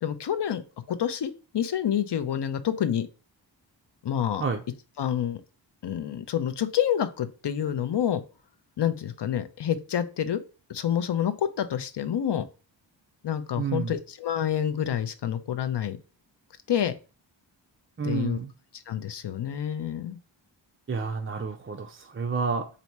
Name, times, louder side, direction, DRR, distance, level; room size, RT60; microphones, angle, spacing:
voice 1, 0.0-0.6 0.9-3.1 4.0-4.4 5.0-5.4 5.8-8.2 8.8-10.4 10.7-12.4 13.2-16.0 16.7-16.9 18.0-18.4 18.9-20.2, left 9 dB, 60° left, 11 dB, 0.6 m, -28 dB
voice 2, 13.6-13.9 18.0-18.5 20.9-22.7, right 5 dB, 30° right, 3 dB, 0.4 m, -30 dB
4.1 x 2.7 x 4.5 m, 0.34 s
wide cardioid pair, 125°, 46 cm